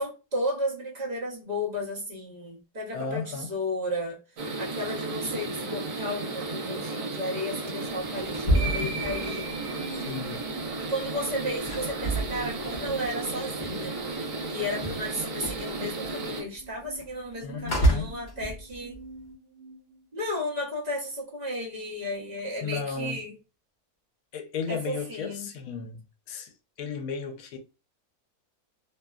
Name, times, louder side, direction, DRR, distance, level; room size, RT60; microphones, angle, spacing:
voice 1, 0.0-4.2 4.6-9.5 10.8-14.0 14.5-19.0 20.1-23.3 24.7-25.5, left 1 dB, 35° right, 0.8 m, -33 dB
voice 2, 2.9-3.5 8.5-9.0 10.0-10.5 17.4-18.2 22.6-23.2 24.3-26.0 26.3-26.5 26.8-27.6, left 5 dB, 80° left, 1.1 m, -34 dB
sound 1, 4.4-16.4, right 3 dB, 65° right, 1.2 m, -34 dB
sound 2, 7.9-10.0 10.2-14.2 14.4-19.2, right 1 dB, 45° left, 0.7 m, -30 dB
sound 3, 8.5-20.6, right 3 dB, 80° right, 1.1 m, -43 dB
2.9 x 2.1 x 2.3 m
omnidirectional pair, 1.6 m